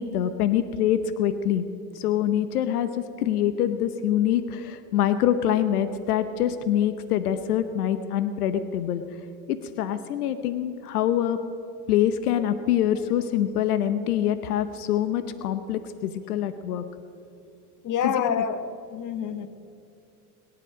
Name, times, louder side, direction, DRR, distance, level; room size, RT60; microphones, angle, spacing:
voice 1, 0.0-1.6 1.9-9.0 9.5-11.4 11.9-16.8 18.0-18.1, left 10 dB, 85° left, 11 dB, 1.0 m, -25 dB
voice 2, 17.8-18.6 18.9-19.5, left 7 dB, 45° left, 10 dB, 1.4 m, -27 dB
22.0 x 11.0 x 5.2 m, 2.6 s
hypercardioid pair, 90°, 44 cm